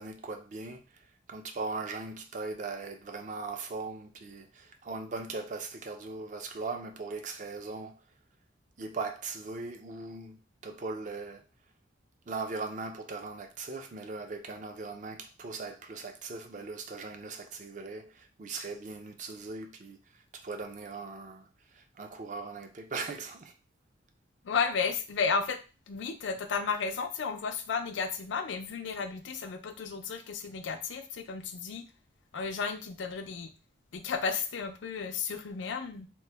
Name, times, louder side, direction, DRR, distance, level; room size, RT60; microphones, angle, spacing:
voice 1, 0.0-8.0 8.8-10.4 10.6-11.5 12.3-23.5, right 3 dB, 45° right, 0.4 m, -39 dB
voice 2, 24.4-25.6 25.9-31.8 32.3-33.5 33.9-36.1, left 5 dB, 90° left, 0.4 m, -33 dB
3.0 x 2.0 x 3.3 m
head